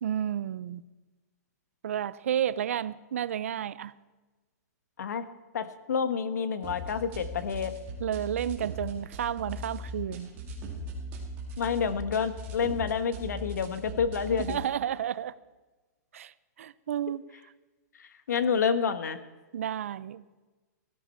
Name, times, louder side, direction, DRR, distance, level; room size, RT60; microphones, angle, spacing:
voice 1, 0.0-0.8 1.8-3.9 8.0-10.3 14.4-15.3 16.1-16.3 16.6-17.2 19.5-20.2, right 10 dB, 55° right, 0.5 m, -31 dB
voice 2, 5.5-7.7 11.6-14.6 18.3-19.2, left 6 dB, 85° left, 1.3 m, -28 dB
sound 1, 6.6-14.6, equal, 20° right, 2.3 m, -39 dB
18.0 x 13.5 x 4.4 m
hypercardioid pair, 180°, 9 cm